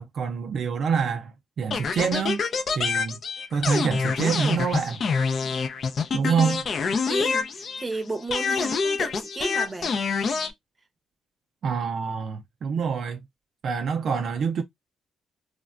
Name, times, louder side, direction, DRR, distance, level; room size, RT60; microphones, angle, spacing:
voice 1, 0.0-2.4 2.8-3.2 3.5-5.0 6.1-6.6 11.6-13.2 13.6-14.6, right 6 dB, 60° right, 0.4 m, -26 dB
sound 1, 1.7-8.0 8.3-10.5, left 5 dB, 50° left, 0.5 m, -26 dB
voice 2, 6.2-6.6 7.1-10.0, right 3 dB, 25° right, 0.7 m, -33 dB
3.2 x 2.1 x 2.4 m
cardioid pair, 90°, 0 cm